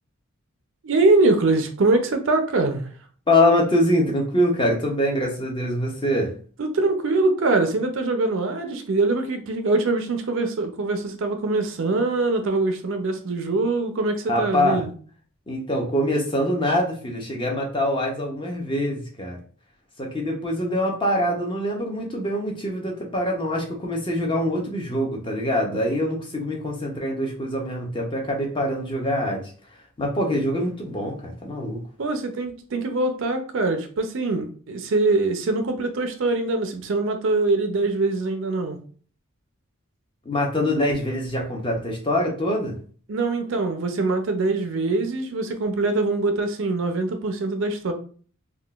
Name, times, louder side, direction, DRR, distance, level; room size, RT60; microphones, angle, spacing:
voice 1, 0.8-2.9 6.6-14.9 32.0-38.8 43.1-47.9, right 3 dB, 55° right, 0.4 m, -23 dB
voice 2, 3.3-6.3 14.3-14.8 15.5-19.4 20.0-29.4 30.0-31.8 40.3-42.8, left 1 dB, 20° left, 0.6 m, -24 dB
3.7 x 2.2 x 2.3 m
head